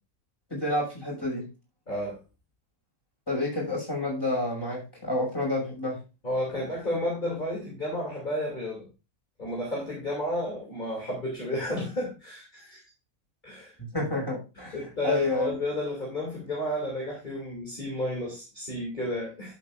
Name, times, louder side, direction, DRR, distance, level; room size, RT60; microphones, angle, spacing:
voice 1, 0.5-1.4 3.3-6.0 13.8-14.8 15.0-15.6, left 1 dB, 15° left, -3 dB, 6.1 m, -29 dB
voice 2, 1.9-2.2 6.2-8.9 9.4-12.8 13.4-13.8 14.6-19.5, left 1 dB, 35° left, -3 dB, 3.0 m, -32 dB
11.5 x 8.0 x 2.5 m, 0.30 s
omnidirectional pair, 1.5 m